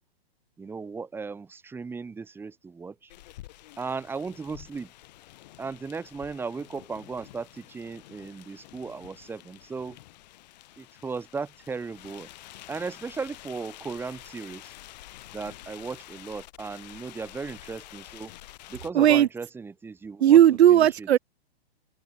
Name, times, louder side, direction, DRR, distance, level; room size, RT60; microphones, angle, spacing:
voice 1, 0.6-2.9 3.8-4.9 5.6-10.0 10.8-12.3 12.7-14.7 15.3-18.3 18.7-20.4 20.7-21.1, right 4 dB, 5° right, 3.7 m, -36 dB
sound 1, 3.1-18.9, left 16 dB, 40° left, 6.0 m, -48 dB
voice 2, 18.9-19.3 20.2-21.2, right 11 dB, 80° right, 0.6 m, -16 dB
open air
hypercardioid pair, 155°, 32 cm